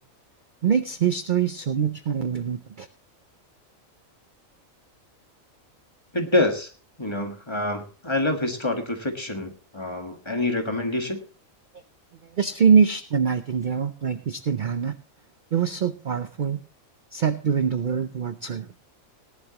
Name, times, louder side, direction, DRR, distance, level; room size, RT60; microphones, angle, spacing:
voice 1, 0.6-2.9 12.2-15.0 15.5-16.6 17.1-18.7, right 7 dB, 50° right, 11 dB, 0.6 m, -23 dB
voice 2, 6.1-6.7 7.0-11.2, left 2 dB, 20° left, 4 dB, 1.6 m, -26 dB
18.0 x 11.0 x 2.9 m, 0.36 s
omnidirectional pair, 1.4 m